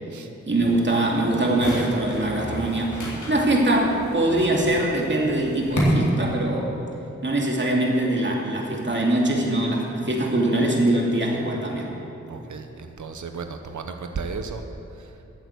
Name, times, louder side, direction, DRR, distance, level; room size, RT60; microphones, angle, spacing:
voice 1, 0.4-6.7 7.2-11.9, right 1 dB, 40° right, -1 dB, 2.6 m, -23 dB
sound 1, 0.6-5.8, left 1 dB, 90° left, 3.7 m, -35 dB
voice 2, 12.3-14.6 14.9-15.2, right 5 dB, 85° right, 6 dB, 0.9 m, -34 dB
14.5 x 8.0 x 8.3 m, 3.0 s
wide cardioid pair, 90°, 29 cm